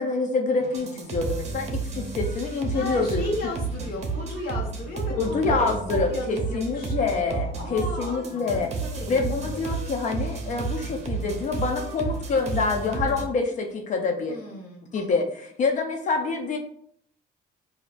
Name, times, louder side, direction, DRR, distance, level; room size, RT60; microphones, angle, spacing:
voice 1, 0.0-3.3 5.1-8.7 9.1-14.4 14.9-16.6, left 4 dB, 45° left, 3 dB, 0.6 m, -26 dB
sound 1, 0.6-13.2, right 4 dB, 40° right, 0.8 m, -32 dB
voice 2, 2.7-9.2 12.8-13.1 14.3-14.9, left 1 dB, 65° left, -1 dB, 1.2 m, -34 dB
4.9 x 2.6 x 2.5 m, 0.65 s
cardioid pair, 110°, 17 cm